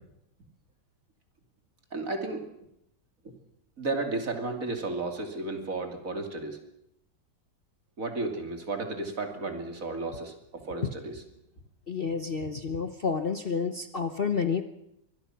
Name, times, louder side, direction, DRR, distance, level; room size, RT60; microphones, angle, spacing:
voice 1, 1.9-2.5 3.2-3.3 3.8-6.6 8.0-11.2, right 2 dB, 50° right, 5 dB, 3.2 m, -33 dB
voice 2, 11.9-14.6, left 5 dB, 40° left, 9 dB, 1.1 m, -29 dB
24.0 x 20.5 x 5.9 m, 0.77 s
omnidirectional pair, 1.9 m